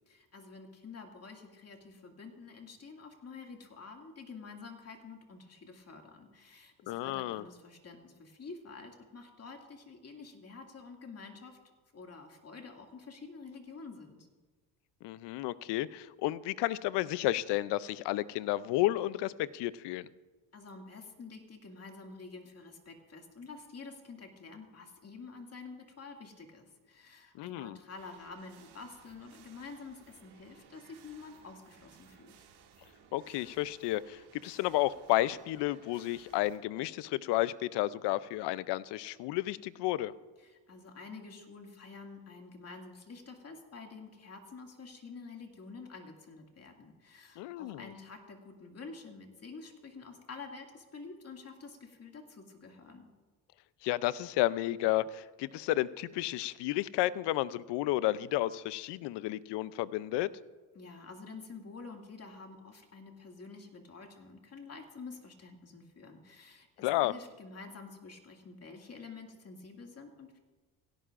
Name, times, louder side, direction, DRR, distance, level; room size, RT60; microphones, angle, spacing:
voice 1, 0.1-11.6 11.9-14.2 20.5-32.4 40.4-53.1 60.7-70.4, left 4 dB, 35° left, 2 dB, 2.2 m, -49 dB
voice 2, 6.9-7.4 15.0-20.1 27.3-27.8 33.1-40.1 47.4-47.9 53.8-60.3 66.8-67.1, left 16 dB, 75° left, 18 dB, 0.6 m, -32 dB
sound 1, 28.0-36.6, right 7 dB, 85° right, 2.4 m, -60 dB
17.0 x 16.5 x 2.5 m, 1.3 s
cardioid pair, 90°, 42 cm